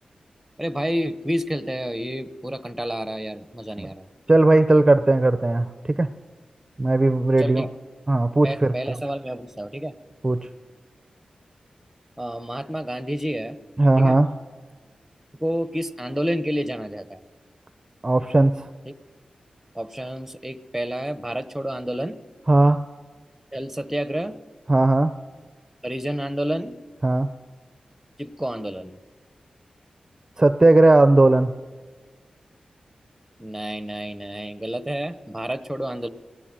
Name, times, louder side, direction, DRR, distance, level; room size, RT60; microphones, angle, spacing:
voice 1, 0.6-4.1 7.4-7.7 8.4-9.9 12.2-13.6 14.0-14.2 15.4-17.2 18.9-19.0 19.7-22.2 23.5-24.4 25.8-26.7 28.2-29.0 33.4-36.1, equal, 5° right, 13 dB, 1.2 m, -29 dB
voice 2, 4.3-5.7 6.0-6.1 6.8-7.7 8.1-9.0 10.2-10.4 13.8-14.3 18.0-18.7 22.5-22.8 24.7-25.1 27.0-27.3 30.4-31.5, right 2 dB, 25° right, 11 dB, 0.7 m, -17 dB
20.5 x 17.0 x 7.7 m, 1.4 s
cardioid pair, 70°, 2 cm